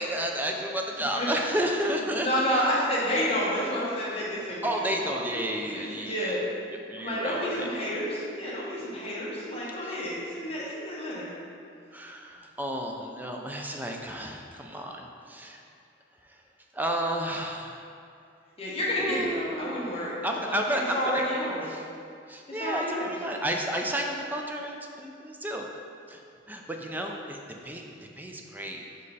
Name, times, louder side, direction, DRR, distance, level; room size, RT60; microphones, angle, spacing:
voice 1, 0.0-2.9 4.6-6.4 6.9-7.7 9.8-10.0 11.9-15.6 16.2-16.4 16.7-17.8 19.0-19.8 20.2-21.2 21.6-21.8 22.3-25.7 26.1-26.2 26.5-27.4 27.6-27.8 28.2-28.8, right 1 dB, 10° right, 2 dB, 0.4 m, -32 dB
voice 2, 2.2-6.4 7.0-11.4 18.6-21.6 22.5-23.1, equal, 35° left, -6 dB, 1.2 m, -30 dB
5.4 x 5.2 x 4.1 m, 2.5 s
head